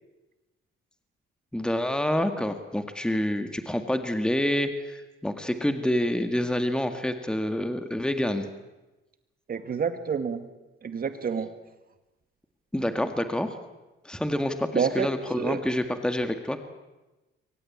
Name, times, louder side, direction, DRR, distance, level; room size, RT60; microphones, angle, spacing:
voice 1, 1.5-8.5 12.7-13.5 14.0-16.6, left 1 dB, 5° left, 7 dB, 1.9 m, -27 dB
voice 2, 9.5-10.4 10.8-11.5 14.7-15.1 15.4-15.6, right 6 dB, 45° right, 9 dB, 2.1 m, -28 dB
23.5 x 17.5 x 8.8 m, 1.1 s
cardioid pair, 90°, 20 cm